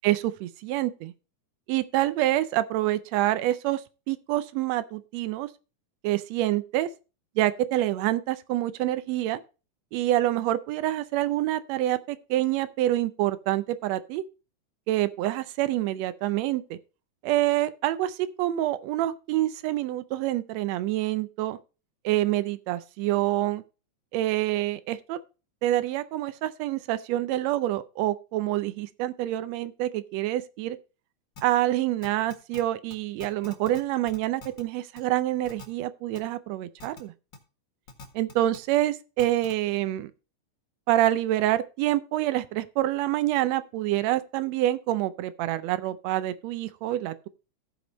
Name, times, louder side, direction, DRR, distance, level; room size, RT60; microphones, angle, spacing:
voice 1, 0.0-1.1 1.7-3.8 4.1-5.5 6.0-6.9 7.4-9.4 9.9-14.2 14.9-16.8 17.2-21.6 22.0-23.6 24.1-25.2 25.6-30.8 31.4-37.1 38.1-40.1 40.9-47.3, right 14 dB, 75° right, 1.7 m, -27 dB
sound 1, 31.4-31.5 32.0-32.6 32.9-33.0 33.2-33.8 34.1-34.6 35.0-35.1 35.4-35.6 36.1-36.2 36.8-37.0 37.3-37.4 37.9-38.6 39.2-39.5, left 3 dB, 40° left, 2.1 m, -43 dB
15.5 x 5.3 x 4.1 m
omnidirectional pair, 3.5 m